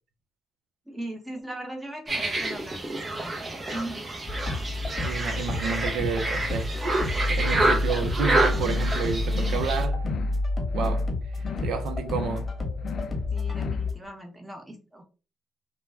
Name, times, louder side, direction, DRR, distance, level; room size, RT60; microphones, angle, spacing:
voice 1, 0.9-4.0 13.3-15.0, right 1 dB, 10° right, 0.9 m, -39 dB
sound 1, 2.1-9.8, right 2 dB, 30° right, 0.6 m, -28 dB
sound 2, 4.3-13.9, left 2 dB, 20° left, 1.0 m, -29 dB
voice 2, 5.0-6.7 7.1-10.0 10.7-12.5, right 5 dB, 80° right, 0.5 m, -30 dB
sound 3, 8.6-9.0 9.3-9.7 10.0-10.4 10.7-11.1 11.4-11.8 12.1-12.5 12.8-13.2 13.5-13.9, left 8 dB, 60° left, 0.3 m, -38 dB
2.2 x 2.1 x 3.4 m
cardioid pair, 90°, 0 cm